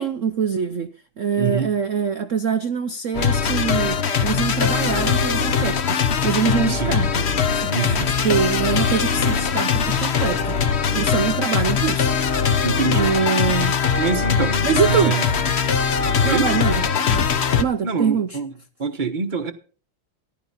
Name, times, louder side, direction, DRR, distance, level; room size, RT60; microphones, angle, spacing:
voice 1, 0.0-7.3 7.5-10.6 10.9-12.1 12.9-13.7 14.6-15.2 16.2-17.3 17.6-18.4, right 7 dB, 80° right, 0.6 m, -24 dB
voice 2, 1.4-1.7 6.6-7.0 7.7-8.1 12.6-13.1 14.0-15.2 16.2-16.5 17.8-18.5 18.8-19.5, right 5 dB, 35° right, 0.8 m, -25 dB
sound 1, 3.1-17.6, left 6 dB, 50° left, 0.8 m, -21 dB
14.5 x 11.5 x 4.1 m
omnidirectional pair, 2.3 m